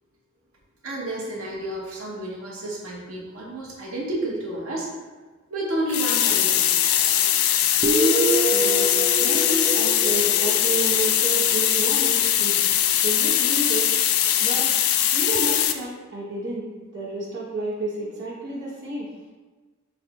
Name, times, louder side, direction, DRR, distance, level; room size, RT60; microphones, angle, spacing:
voice 1, 0.8-4.9 5.5-7.2, right 1 dB, 90° right, -4 dB, 0.8 m, -31 dB
sound 1, 5.9-15.7, left 11 dB, 90° left, 0.3 m, -21 dB
Guitar, 7.8-11.3, right 2 dB, 25° right, 0.4 m, -26 dB
voice 2, 8.5-12.6 13.0-14.1 14.4-14.8 15.1-16.7 16.9-19.1, right 2 dB, 55° right, -8 dB, 1.1 m, -30 dB
4.0 x 3.3 x 2.8 m, 1.3 s
head